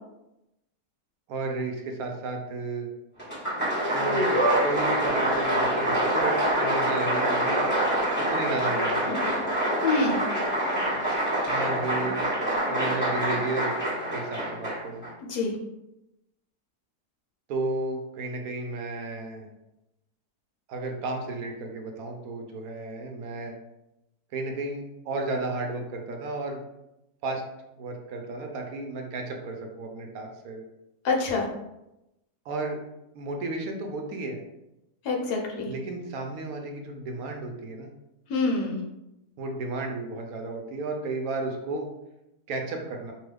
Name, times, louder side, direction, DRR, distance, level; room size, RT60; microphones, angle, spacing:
voice 1, 1.3-2.9 3.9-7.6 8.2-9.4 11.5-12.3 12.7-13.8 14.1-15.0 17.5-19.5 20.7-23.6 24.3-26.6 27.2-27.4 27.8-30.6 32.5-32.8 33.1-34.4 35.7-37.9 39.4-41.9 42.5-43.1, right 2 dB, 70° right, 2 dB, 1.0 m, -33 dB
Applause, 3.2-15.1, right 1 dB, 5° left, 1.3 m, -26 dB
voice 2, 9.8-10.3 15.3-15.5 31.0-31.5 35.0-35.7 38.3-38.8, left 3 dB, 85° left, 0 dB, 1.2 m, -26 dB
2.9 x 2.3 x 3.3 m, 0.90 s
omnidirectional pair, 1.7 m